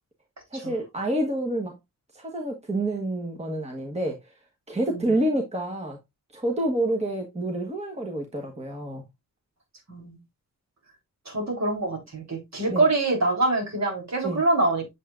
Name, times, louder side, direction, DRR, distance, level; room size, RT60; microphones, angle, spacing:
voice 1, 0.5-1.8 2.1-4.2 4.7-6.0 6.3-9.0 12.7-12.8 14.2-14.4, right 1 dB, 20° right, 1.3 m, -28 dB
voice 2, 11.3-15.0, right 2 dB, 55° right, 3.8 m, -25 dB
8.3 x 7.1 x 2.5 m
wide cardioid pair, 160°, 33 cm